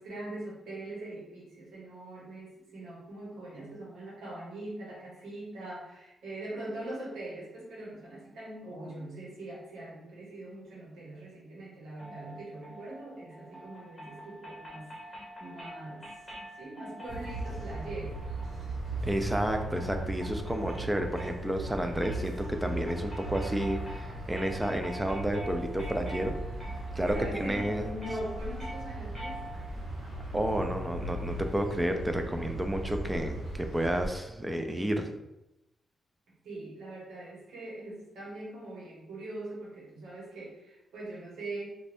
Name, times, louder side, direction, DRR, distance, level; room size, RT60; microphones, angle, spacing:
voice 1, 0.0-16.3 16.6-18.2 26.9-29.4 36.4-41.8, right 1 dB, 90° right, -5 dB, 1.3 m, -42 dB
sound 1, 12.0-29.8, equal, 5° left, 1.2 m, -46 dB
sound 2, 17.1-34.1, right 1 dB, 65° right, 1.3 m, -38 dB
voice 2, 19.0-26.4 27.0-27.9 30.3-35.1, right 1 dB, 10° right, 5 dB, 0.4 m, -31 dB
2.6 x 2.5 x 3.3 m, 0.91 s
cardioid pair, 125°, 0 cm